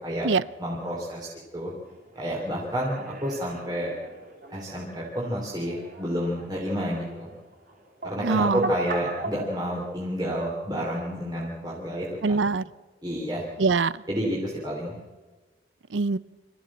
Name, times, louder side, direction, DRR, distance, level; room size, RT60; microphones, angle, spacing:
voice 1, 0.6-1.7 2.2-3.9 4.5-7.3 8.0-12.5 13.0-13.4 14.1-14.9, equal, 20° right, -5 dB, 3.5 m, -30 dB
sound 1, 1.8-9.5, right 2 dB, 50° right, 5.7 m, -40 dB
voice 2, 8.2-8.7 12.2-12.6 13.6-14.0 15.9-16.2, right 4 dB, 85° right, 20 dB, 0.6 m, -23 dB
26.0 x 14.5 x 7.5 m, 1.3 s
head